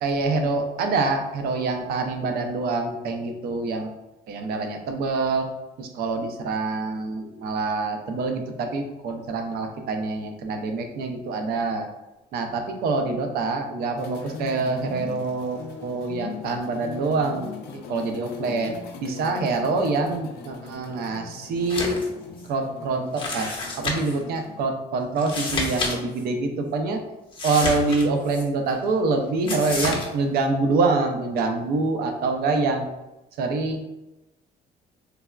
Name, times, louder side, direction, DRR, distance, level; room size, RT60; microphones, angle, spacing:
voice 1, 0.0-3.9 4.3-5.5 5.8-11.9 12.3-18.7 19.0-22.0 22.5-23.5 23.8-27.0 27.4-32.9 33.4-33.8, right 3 dB, 65° right, 5 dB, 0.5 m, -25 dB
sound 1, 14.0-24.6, left 5 dB, 75° left, 0.4 m, -40 dB
sound 2, 21.6-22.1 22.4-22.5 23.2-24.2 25.2-25.9 26.2-26.3 27.3-28.4 29.5-30.1, left 2 dB, 30° left, 0.6 m, -29 dB
3.3 x 2.1 x 2.3 m, 0.97 s
cardioid pair, 110°, 17 cm